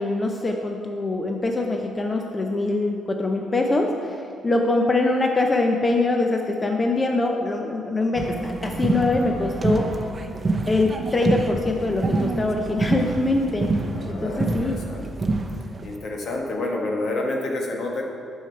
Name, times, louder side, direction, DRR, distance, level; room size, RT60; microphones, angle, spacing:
voice 1, 0.0-9.9 10.7-13.7 14.1-14.8, left 2 dB, 25° left, 2 dB, 0.6 m, -23 dB
sound 1, 8.2-16.0, right 3 dB, 30° right, 0.7 m, -26 dB
voice 2, 13.9-15.1 15.8-18.1, left 2 dB, 65° left, 0 dB, 1.4 m, -29 dB
8.9 x 6.4 x 4.5 m, 2.5 s
cardioid pair, 90°, 0 cm